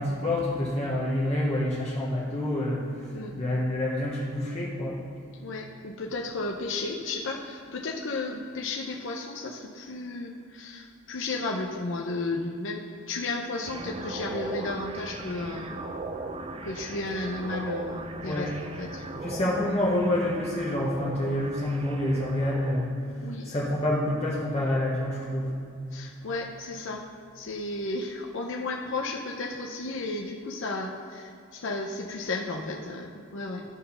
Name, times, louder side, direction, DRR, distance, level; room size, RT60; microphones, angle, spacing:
voice 1, 0.0-5.0 18.2-18.5 19.1-25.5, left 1 dB, 30° left, -7 dB, 1.2 m, -28 dB
voice 2, 5.4-15.8 16.2-16.3 16.6-19.0 23.2-23.4 25.9-27.0 27.3-33.6, left 2 dB, 65° left, 0 dB, 0.7 m, -33 dB
sound 1, 13.7-22.8, right 2 dB, 25° right, 0.4 m, -38 dB
12.5 x 4.4 x 5.6 m, 2.4 s
head